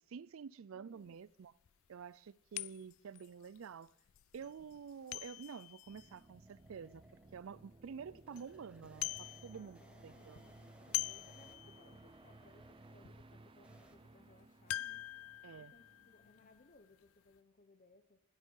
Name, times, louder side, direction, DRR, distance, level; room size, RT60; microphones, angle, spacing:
voice 1, 0.1-1.5 1.9-3.9 4.3-7.0 7.3-10.4 15.4-15.7, right 6 dB, 75° right, 0.4 m, -49 dB
voice 2, 0.7-1.2 9.5-15.0 15.6-18.2, left 2 dB, 40° left, 0.8 m, -65 dB
sound 1, 1.1-1.2 1.6-1.7 2.5-7.2 7.7-7.8 8.1-8.5 8.8-9.9 10.1-12.1 12.5-12.6 13.0-13.2 14.7-17.1 17.3-17.4, left 15 dB, 75° left, 0.4 m, -44 dB
sound 2, 5.4-14.0, right 1 dB, 5° right, 1.3 m, -66 dB
sound 3, 5.8-16.6, right 2 dB, 25° right, 0.5 m, -60 dB
14.0 x 13.0 x 5.5 m
head